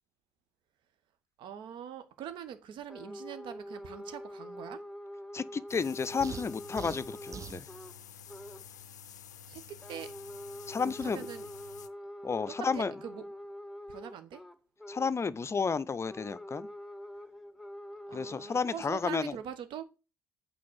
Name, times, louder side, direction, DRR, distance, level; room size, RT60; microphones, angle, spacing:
voice 1, 1.4-4.8 9.5-10.1 10.8-11.5 12.5-13.2 13.9-14.4 18.1-19.8, right 9 dB, 60° right, 1.1 m, -43 dB
sound 1, 2.9-8.0 8.3-8.6 9.8-15.2 16.1-18.8, left 1 dB, ahead, 1.1 m, -45 dB
voice 2, 5.3-7.7 10.7-11.3 12.2-12.9 14.9-16.7 18.1-19.3, left 5 dB, 30° left, 0.5 m, -32 dB
sound 2, 5.7-11.9, left 8 dB, 85° left, 0.4 m, -50 dB
sound 3, 6.2-7.7, right 8 dB, 35° right, 0.3 m, -43 dB
8.5 x 3.9 x 6.3 m
figure-of-eight pair, 45°, 9 cm